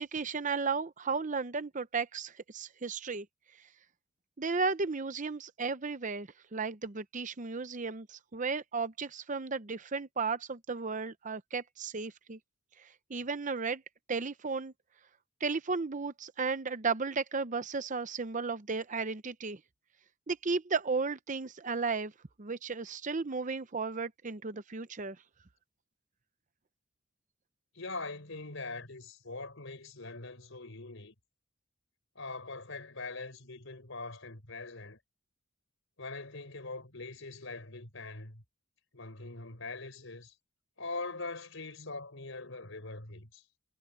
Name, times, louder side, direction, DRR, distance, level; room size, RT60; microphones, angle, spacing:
voice 1, 0.0-3.3 4.4-12.4 12.8-13.8 14.1-14.7 15.4-19.6 20.3-22.1 22.4-25.2, right 4 dB, 35° right, 0.7 m, -34 dB
voice 2, 27.7-31.1 32.1-35.0 36.0-38.4 38.9-40.3 40.8-43.4, left 3 dB, 65° left, 4.8 m, -42 dB
head